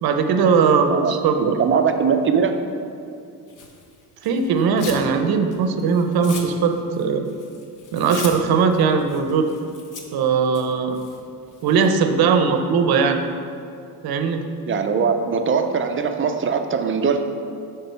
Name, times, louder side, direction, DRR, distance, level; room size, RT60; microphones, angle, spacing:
voice 1, 0.0-1.6 4.2-7.3 7.9-9.5 10.1-11.0 11.6-13.2 14.0-14.4, right 5 dB, 70° right, 6 dB, 0.7 m, -19 dB
voice 2, 1.4-2.6 14.7-17.2, right 6 dB, 35° right, 6 dB, 0.5 m, -21 dB
Tearing, 3.5-5.1 5.4-12.0, left 4 dB, 50° left, 1.0 m, -39 dB
8.3 x 3.7 x 5.6 m, 2.5 s
cardioid pair, 150°, 39 cm